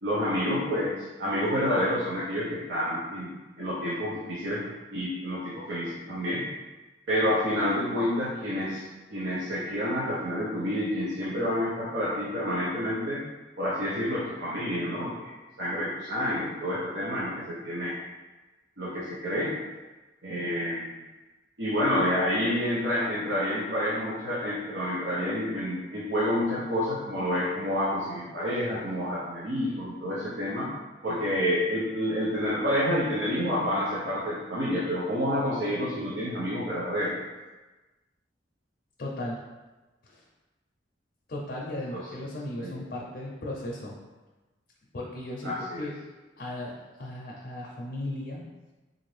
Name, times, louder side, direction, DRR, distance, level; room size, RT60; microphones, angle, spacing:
voice 1, 0.0-3.3 3.6-4.6 4.9-6.4 7.1-8.8 9.1-13.2 13.6-15.3 15.6-17.9 18.8-19.5 20.2-20.9 21.6-30.7 31.0-37.2 41.9-42.0 42.6-42.7 45.4-45.8, equal, 85° right, -8 dB, 0.7 m, -28 dB
voice 2, 39.0-39.4 40.0-40.2 41.3-43.9 44.9-45.9 46.4-48.4, left 1 dB, 55° left, -3 dB, 0.5 m, -36 dB
3.9 x 2.6 x 3.2 m, 1.2 s
head